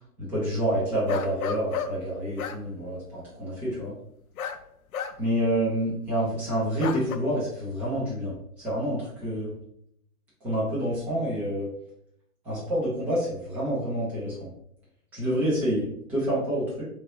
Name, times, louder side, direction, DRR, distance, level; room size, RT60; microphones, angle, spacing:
voice 1, 0.2-3.9 5.2-9.5 10.4-11.7 12.4-14.5 15.1-16.8, equal, 5° right, -8 dB, 0.5 m, -28 dB
sound 1, 0.6-0.7 1.1-2.0 2.4-2.6 4.4-4.6 4.9-5.3 6.8-7.2, left 7 dB, 65° left, 0.6 m, -32 dB
3.6 x 3.2 x 3.9 m, 0.71 s
figure-of-eight pair, 130°, 45 cm